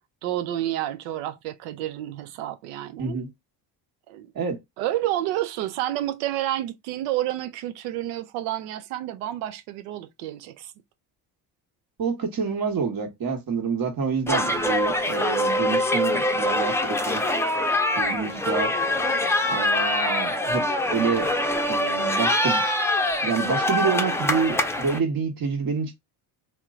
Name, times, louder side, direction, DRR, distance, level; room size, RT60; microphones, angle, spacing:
voice 1, 0.2-3.2 4.1-4.3 4.8-10.7, right 13 dB, 90° right, 0.6 m, -29 dB
voice 2, 3.0-3.3 4.3-4.6 12.0-17.2 18.0-18.7 19.5-21.3 21.7-22.6 23.2-26.0, right 5 dB, 45° right, 1.3 m, -27 dB
sound 1, 14.3-25.0, left 1 dB, 5° left, 0.5 m, -24 dB
2.9 x 2.2 x 3.6 m
supercardioid pair, 70°, 47 cm